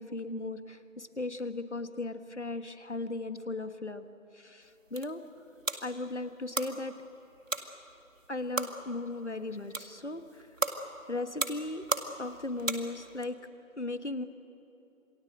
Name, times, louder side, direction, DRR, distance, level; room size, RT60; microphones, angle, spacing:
voice 1, 0.0-4.1 4.3-5.4 5.8-7.0 8.3-10.5 11.1-11.9 12.2-13.4 13.8-14.2, left 2 dB, 55° left, 10 dB, 1.6 m, -37 dB
sound 1, 4.6-13.3, right 2 dB, 70° right, 2.1 m, -38 dB
28.0 x 20.0 x 8.0 m, 3.0 s
figure-of-eight pair, 180°, 41 cm